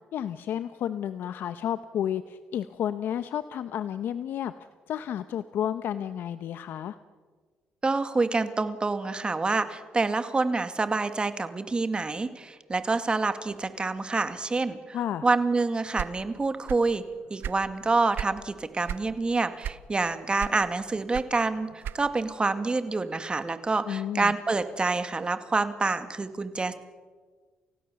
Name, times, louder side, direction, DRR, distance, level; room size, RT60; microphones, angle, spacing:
voice 1, 0.1-4.5 4.9-7.0 14.9-15.2 23.9-24.3, left 10 dB, 70° left, 12 dB, 0.9 m, -31 dB
voice 2, 7.8-15.0 15.2-17.0 17.3-26.7, right 3 dB, 25° right, 10 dB, 2.1 m, -27 dB
sound 1, 15.9-17.0 17.2-18.4 18.8-19.1 19.6-20.1 20.4-22.3, right 10 dB, 65° right, 0.6 m, -35 dB
29.5 x 16.5 x 7.0 m, 1.4 s
cardioid pair, 80°, 4 cm